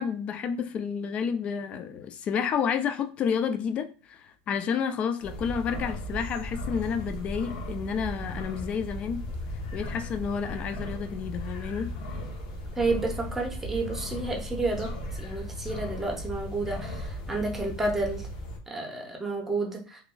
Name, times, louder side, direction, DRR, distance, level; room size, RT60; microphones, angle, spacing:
voice 1, 0.0-9.2 9.7-11.9, left 7 dB, 35° left, 0.3 m, -30 dB
sound 1, 5.2-18.6, equal, 75° left, 0.7 m, -36 dB
voice 2, 12.8-14.9 15.2-18.3 18.7-20.0, right 2 dB, 10° right, 0.7 m, -30 dB
3.0 x 2.4 x 2.2 m
supercardioid pair, 140°, 4 cm